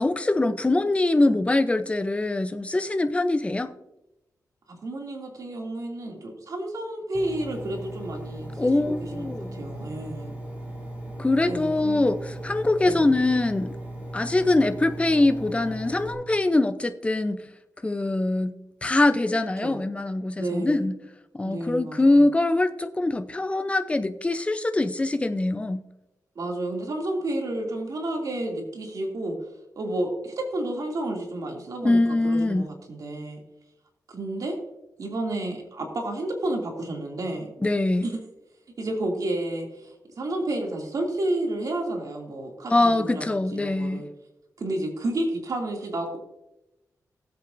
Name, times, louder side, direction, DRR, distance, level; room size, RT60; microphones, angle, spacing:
voice 1, 0.0-3.7 8.6-9.6 11.2-13.8 14.1-17.4 17.8-21.0 21.4-25.8 31.8-32.7 37.6-38.1 42.7-44.0, left 2 dB, 20° left, 0.7 m, -23 dB
voice 2, 4.7-10.3 11.4-12.0 12.8-13.2 19.6-19.8 20.4-20.9 21.4-22.2 26.3-29.4 29.8-33.4 34.1-34.6 35.0-37.5 38.0-38.2 38.8-44.1 44.6-46.2, right 1 dB, 65° right, 2.7 m, -31 dB
Engine, 7.1-16.1, right 1 dB, 20° right, 3.8 m, -37 dB
18.5 x 8.0 x 2.7 m
wide cardioid pair, 115°, 7 cm